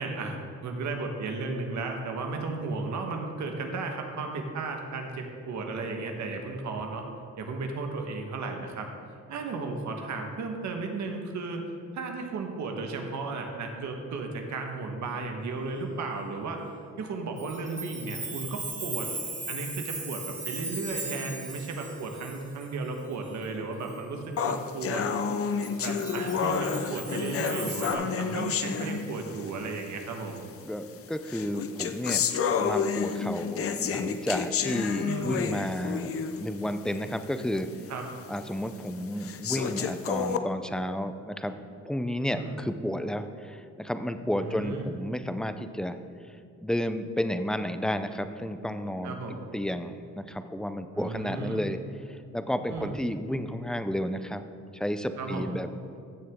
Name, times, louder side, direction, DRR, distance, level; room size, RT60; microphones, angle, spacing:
voice 1, 0.0-7.0 7.4-8.9 9.3-11.6 11.9-16.7 17.0-19.1 19.5-25.1 25.8-30.4 35.0-35.4 37.9-38.0 42.3-42.6 44.3-44.9 49.0-49.5 50.9-51.6 52.7-53.0 55.2-55.5, right 3 dB, 70° right, 3 dB, 1.4 m, -34 dB
Chime, 17.4-23.5 23.9-24.0 25.6-27.9, right 3 dB, 25° right, 2.2 m, -38 dB
sound 1, 24.4-29.5 30.4-30.5 31.3-36.5 36.9-37.0 37.6-37.7 38.4-38.5 39.2-40.4, left 6 dB, 50° left, 0.7 m, -30 dB
voice 2, 26.3-26.8 30.6-32.2 32.6-36.1 36.4-37.7 38.3-41.6 41.8-46.0 46.6-51.8 52.1-54.4 54.7-55.7, equal, ahead, 10 dB, 0.5 m, -32 dB
15.0 x 6.6 x 3.7 m, 2.5 s
cardioid pair, 90°, 30 cm